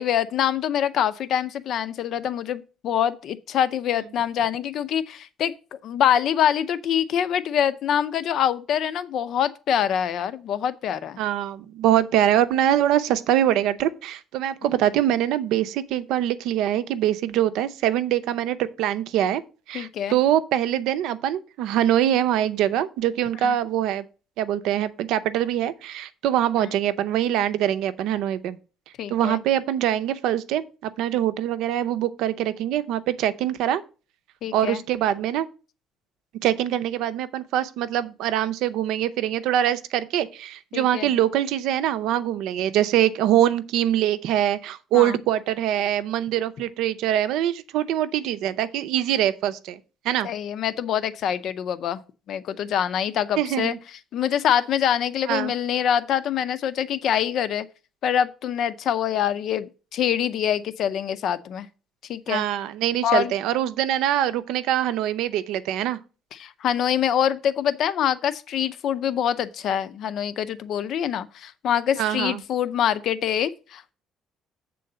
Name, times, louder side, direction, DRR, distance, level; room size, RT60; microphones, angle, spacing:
voice 1, 0.0-11.2 19.7-20.2 23.4-23.6 26.6-26.8 29.0-29.4 34.4-34.8 40.7-41.1 44.9-45.2 50.2-52.0 52.3-53.8 54.1-57.7 58.0-61.7 62.1-62.4 63.0-63.3 66.3-73.9, left 9 dB, 50° left, 0.5 m, -25 dB
voice 2, 11.2-19.4 19.7-24.0 24.4-28.6 29.1-33.8 34.5-35.5 36.4-49.8 50.0-50.3 53.4-53.8 55.3-55.5 62.3-66.0 72.0-72.4, right 11 dB, 80° right, 0.7 m, -23 dB
7.6 x 3.9 x 6.7 m
cardioid pair, 180°, 0 cm